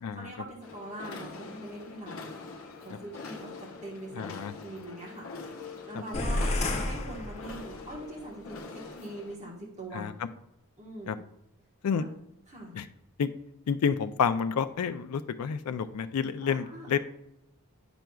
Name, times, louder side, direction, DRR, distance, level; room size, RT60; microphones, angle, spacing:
voice 1, 0.1-2.3 2.8-4.3 4.6-5.3 5.9-6.5 6.8-10.1 10.8-11.2 11.9-12.1 12.5-12.7 16.4-17.0, right 1 dB, 30° right, -4 dB, 1.2 m, -42 dB
sound 1, 0.6-9.4, left 4 dB, 65° left, 0.9 m, -44 dB
voice 2, 4.2-4.5 9.9-10.1 11.1-11.2 11.8-12.0 12.8-12.9 13.2-13.3 13.7-17.0, left 6 dB, 90° left, 11 dB, 0.4 m, -29 dB
sound 2, 6.1-8.0, left 2 dB, 30° left, 0.6 m, -31 dB
8.9 x 6.0 x 2.3 m, 0.82 s
head